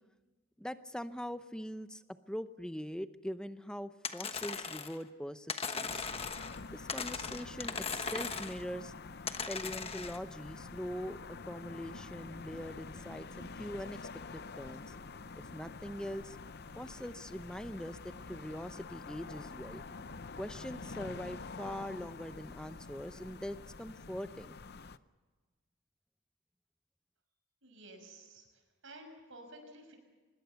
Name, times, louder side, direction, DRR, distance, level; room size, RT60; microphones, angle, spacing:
voice 1, 0.6-2.0 2.3-6.0 6.7-8.9 9.5-14.0 14.3-14.9 15.4-16.4 16.7-19.8 20.4-24.6, equal, 5° left, 11 dB, 0.7 m, -42 dB
sound 1, 4.0-5.0 5.5-6.6 6.9-8.6 9.3-10.2, left 5 dB, 25° left, 1.1 m, -38 dB
sound 2, 5.9-25.0, left 4 dB, 50° left, 0.7 m, -47 dB
voice 2, 27.6-30.0, right 1 dB, 65° right, 5 dB, 6.0 m, -53 dB
24.5 x 21.0 x 7.0 m, 1.3 s
head